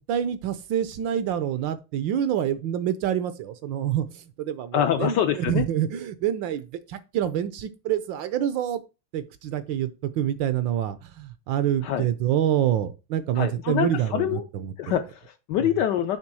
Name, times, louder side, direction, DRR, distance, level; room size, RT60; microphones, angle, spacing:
voice 1, 0.0-8.8 9.1-14.7, right 10 dB, 70° right, 1.2 m, -27 dB
voice 2, 4.7-5.7 11.8-12.1 13.3-14.4 14.8-16.2, left 10 dB, 75° left, 1.0 m, -25 dB
7.4 x 3.4 x 6.1 m
omnidirectional pair, 2.3 m